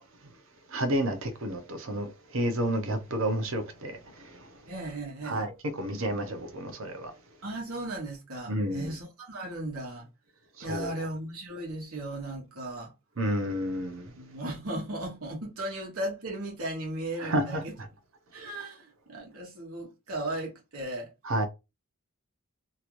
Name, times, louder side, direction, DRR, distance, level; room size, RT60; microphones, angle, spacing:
voice 1, 0.7-4.0 5.2-7.1 8.5-8.9 10.6-11.0 13.2-14.1 17.2-17.9 21.2-21.5, right 1 dB, 65° right, 0.7 m, -30 dB
voice 2, 4.7-5.5 7.4-10.1 10.6-12.9 14.2-17.7 18.3-21.1, right 1 dB, 90° right, 1.3 m, -36 dB
2.9 x 2.5 x 3.0 m
head